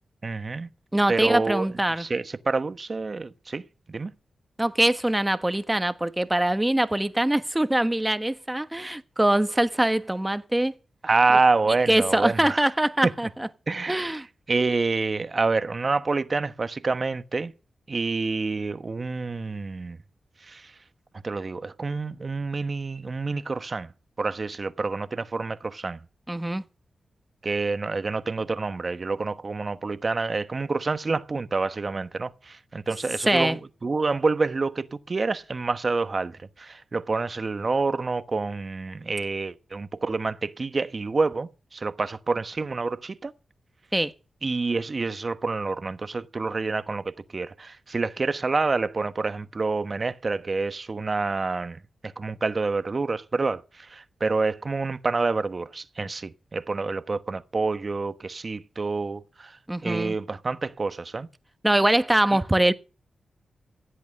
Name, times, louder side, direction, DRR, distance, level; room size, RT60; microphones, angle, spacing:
voice 1, 0.2-0.7 1.1-1.7 2.0-3.6 3.9-4.1 11.0-12.6 13.0-13.1 13.7-17.5 17.9-20.0 20.4-20.7 21.2-23.9 24.2-26.0 27.4-43.3 44.4-59.6 59.8-61.3 62.3-62.4, right 3 dB, 50° right, 1.1 m, -27 dB
voice 2, 0.9-2.1 4.6-10.7 11.9-13.5 13.9-14.3 26.3-26.6 33.3-33.6 43.9-44.1 59.7-60.2 61.6-62.7, right 1 dB, 15° right, 1.3 m, -23 dB
16.0 x 8.3 x 6.4 m
cardioid pair, 45°, 0 cm